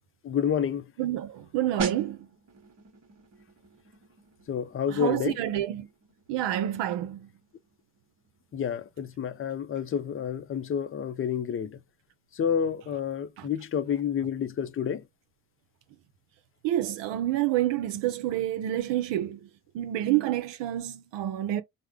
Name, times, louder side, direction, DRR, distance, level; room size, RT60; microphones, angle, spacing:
voice 1, 0.2-0.9 4.5-5.4 8.5-11.8 12.3-15.0, left 8 dB, 30° left, 0.5 m, -29 dB
voice 2, 1.0-2.3 4.9-5.9 6.3-7.3 13.4-13.5 16.6-19.5 19.7-21.6, right 13 dB, 70° right, 0.7 m, -28 dB
sound 1, 1.8-12.3 12.6-12.8, right 3 dB, 35° right, 1.1 m, -43 dB
3.3 x 2.2 x 3.6 m
supercardioid pair, 75°, 45 cm